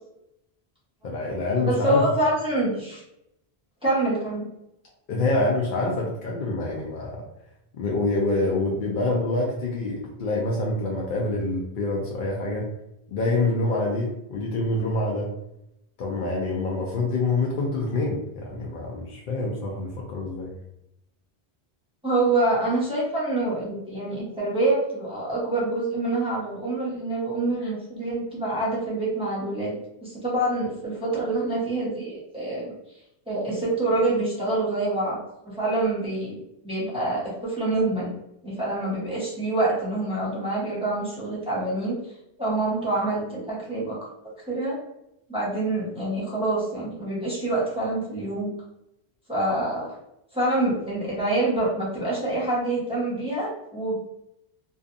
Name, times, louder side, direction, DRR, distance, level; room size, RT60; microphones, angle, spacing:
voice 1, 1.0-2.0 5.1-7.2 7.8-12.7 13.1-15.3 16.0-20.5 27.6-27.7, left 2 dB, 60° left, -3 dB, 0.7 m, -26 dB
voice 2, 1.6-3.0 3.8-4.4 22.0-29.7 30.0-32.7 33.3-35.2 35.4-36.4 36.6-38.1 38.4-42.0 42.4-44.0 44.5-44.8 45.3-48.5 49.3-49.9 50.3-54.0, right 2 dB, 5° right, -8 dB, 0.9 m, -26 dB
2.6 x 2.3 x 2.5 m, 0.82 s
omnidirectional pair, 1.1 m